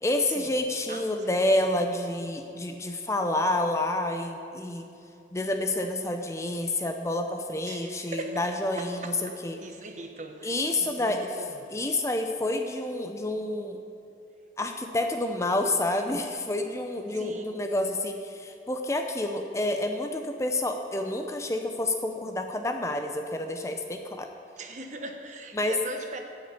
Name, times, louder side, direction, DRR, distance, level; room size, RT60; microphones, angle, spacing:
voice 1, 0.0-4.9 5.3-9.6 10.4-11.4 11.7-13.8 14.6-24.3 25.5-25.8, left 1 dB, 15° left, 5 dB, 0.6 m, -29 dB
voice 2, 0.9-1.5 7.6-8.5 8.8-11.9 17.1-17.5 24.6-26.2, right 2 dB, 45° right, 5 dB, 1.1 m, -41 dB
12.0 x 6.3 x 8.3 m, 2.7 s
head